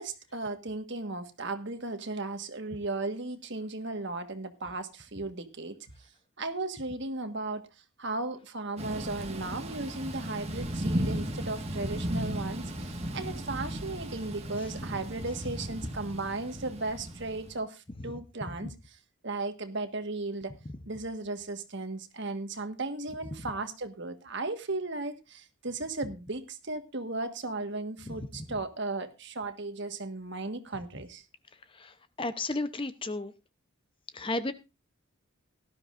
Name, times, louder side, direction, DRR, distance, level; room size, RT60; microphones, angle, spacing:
voice 1, 0.0-5.8 6.4-7.6 8.0-18.7 19.2-20.5 20.8-31.2, right 2 dB, 60° right, 8 dB, 1.5 m, -36 dB
Thunder / Rain, 8.8-17.6, equal, 30° right, 1.6 m, -35 dB
voice 2, 31.7-33.3 34.1-34.5, left 2 dB, 25° left, 12 dB, 0.7 m, -33 dB
17.5 x 12.5 x 2.5 m, 0.27 s
head